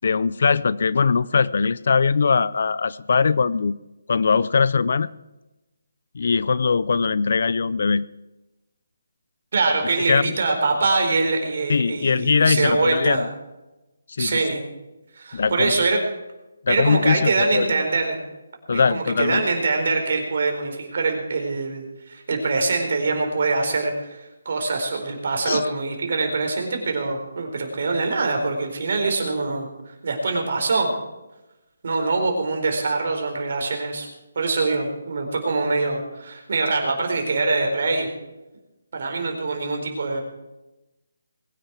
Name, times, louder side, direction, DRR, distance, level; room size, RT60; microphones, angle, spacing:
voice 1, 0.0-3.7 4.1-5.1 6.1-8.1 10.1-10.3 11.7-13.3 14.2-14.4 15.3-15.8 16.7-17.7 18.7-19.4 25.4-25.6, left 5 dB, 60° left, 19 dB, 0.5 m, -21 dB
voice 2, 9.5-13.2 14.2-14.6 15.1-16.0 16.7-18.2 18.7-30.9 31.8-34.1 34.4-38.1 38.9-40.2, right 3 dB, 55° right, 3 dB, 4.3 m, -24 dB
21.0 x 10.0 x 4.8 m, 1.0 s
figure-of-eight pair, 160°, 0 cm